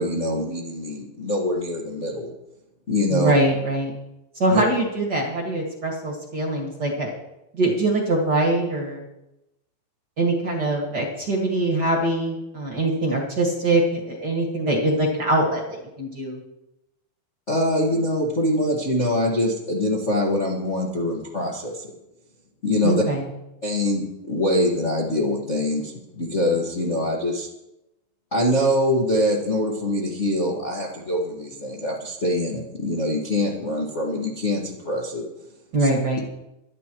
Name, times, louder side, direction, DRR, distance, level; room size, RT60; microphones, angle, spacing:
voice 1, 0.0-2.3 2.9-3.3 4.5-4.6 17.5-21.9 22.6-23.0 23.6-27.5 28.3-35.2 35.8-35.9, left 1 dB, 75° left, -3 dB, 0.6 m, -24 dB
voice 2, 3.1-3.9 4.3-7.1 7.5-9.0 10.2-15.6 16.0-16.4 22.8-23.2 35.7-36.2, right 2 dB, 40° right, -1 dB, 1.6 m, -23 dB
23.0 x 10.5 x 3.1 m, 0.90 s
omnidirectional pair, 4.6 m